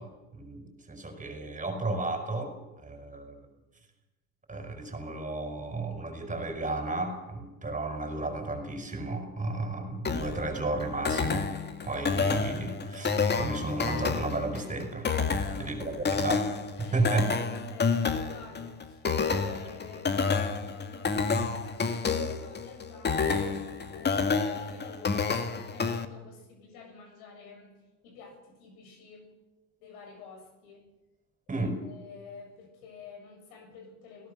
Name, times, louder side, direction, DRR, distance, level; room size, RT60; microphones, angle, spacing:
voice 1, 0.0-2.6 2.8-3.5 4.5-11.5 11.8-15.1 15.6-16.5 16.9-17.4 31.5-31.8, right 2 dB, 15° right, 6 dB, 5.7 m, -33 dB
sound 1, 10.0-26.0, left 5 dB, 20° left, 2.0 m, -29 dB
voice 2, 15.3-15.8 16.8-17.1 17.5-23.5 23.9-29.3 29.8-30.9 31.5-34.3, left 5 dB, 70° left, 4 dB, 7.4 m, -50 dB
29.0 x 17.5 x 7.0 m, 1.1 s
hypercardioid pair, 95°, 45 cm